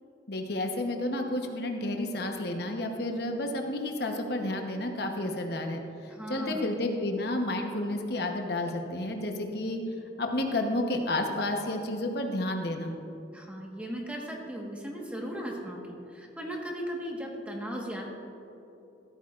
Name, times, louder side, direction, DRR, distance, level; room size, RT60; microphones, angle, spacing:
voice 1, 0.3-9.8 10.2-12.9, left 1 dB, 60° left, 3 dB, 1.0 m, -31 dB
voice 2, 6.1-6.7 13.3-18.1, equal, 5° right, -1 dB, 1.3 m, -37 dB
15.0 x 13.0 x 2.5 m, 2.9 s
head